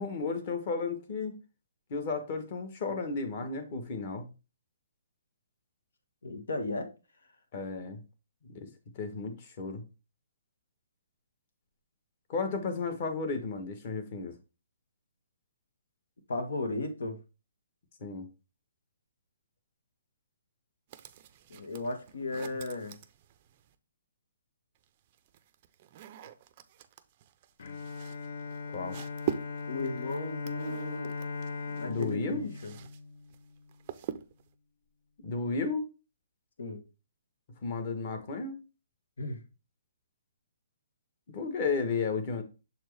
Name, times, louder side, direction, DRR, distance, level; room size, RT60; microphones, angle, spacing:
voice 1, 0.0-1.3 1.9-4.3 7.5-8.0 8.4-8.7 8.9-9.8 12.3-14.3 18.0-18.3 28.7-29.0 31.7-32.5 35.2-35.9 37.6-38.6 41.3-42.4, left 4 dB, 35° left, 1.2 m, -33 dB
voice 2, 6.2-6.9 16.3-17.2 21.5-23.0 29.7-31.1 31.8-32.7 36.6-36.8 39.2-39.4, left 2 dB, 85° left, 1.6 m, -35 dB
sound 1, 20.9-23.8 24.8-33.0 33.3-34.5, right 10 dB, 30° right, 0.4 m, -43 dB
Bowed string instrument, 27.6-33.8, left 4 dB, 55° left, 0.6 m, -39 dB
6.8 x 4.4 x 3.3 m
hypercardioid pair, 170°, 0 cm